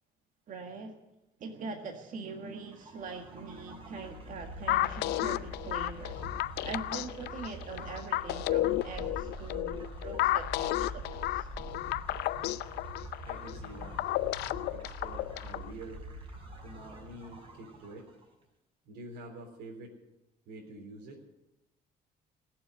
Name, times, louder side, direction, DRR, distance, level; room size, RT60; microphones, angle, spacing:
voice 1, 0.5-1.0 1.4-6.2 6.6-11.5, right 4 dB, 50° right, 3 dB, 1.8 m, -42 dB
sound 1, 2.6-18.2, equal, 30° right, 6.3 m, -45 dB
sound 2, 4.7-15.7, left 16 dB, 80° left, 0.6 m, -32 dB
voice 2, 13.2-14.0 14.7-16.1 16.6-18.1 18.9-19.9 20.5-21.2, right 2 dB, 80° right, 0 dB, 3.8 m, -47 dB
19.5 x 7.3 x 9.6 m, 0.90 s
cardioid pair, 110°, 17 cm